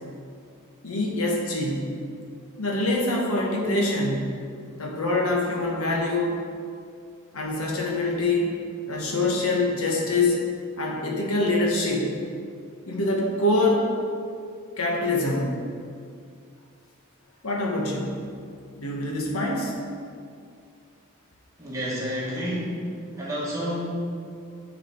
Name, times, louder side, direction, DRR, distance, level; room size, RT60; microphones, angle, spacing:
voice 1, 0.8-1.9 2.6-4.4 4.8-6.4 7.3-8.5 8.9-10.4 10.8-12.1 12.9-13.9 14.8-15.6 17.4-18.2 18.7-19.7, left 2 dB, 80° left, -1 dB, 1.3 m, -25 dB
voice 2, 21.6-22.8 23.2-23.9, equal, 15° right, -8 dB, 2.1 m, -29 dB
9.5 x 4.9 x 4.5 m, 2.3 s
head